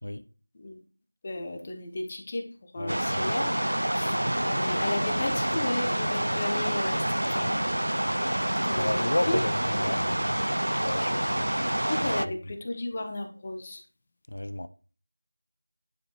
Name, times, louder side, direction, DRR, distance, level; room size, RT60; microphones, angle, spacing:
voice 1, 1.2-2.5 2.7-3.6 3.9-7.6 8.6-9.4 9.7-9.9 11.9-13.8, left 2 dB, 25° left, 1.2 m, -34 dB
sound 1, 2.9-12.3, right 1 dB, 70° right, 0.5 m, -27 dB
voice 2, 8.8-10.0 10.8-11.5 14.3-14.7, left 1 dB, 55° left, 0.6 m, -31 dB
10.5 x 5.3 x 4.8 m
figure-of-eight pair, 170°, 0 cm